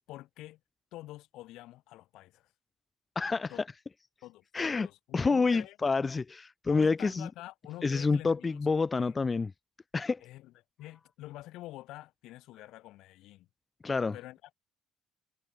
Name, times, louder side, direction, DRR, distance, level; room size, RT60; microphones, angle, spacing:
voice 1, 0.1-0.6 0.9-2.5 3.5-3.6 4.2-4.4 4.7-5.8 6.7-9.1 10.2-10.5 10.8-13.5 14.1-14.5, left 16 dB, 80° left, 3.8 m, -47 dB
voice 2, 3.2-3.5 4.5-4.9 5.1-7.3 7.8-9.5 9.9-10.2 13.8-14.1, left 4 dB, 25° left, 0.3 m, -28 dB
cardioid pair, 90°, 0 cm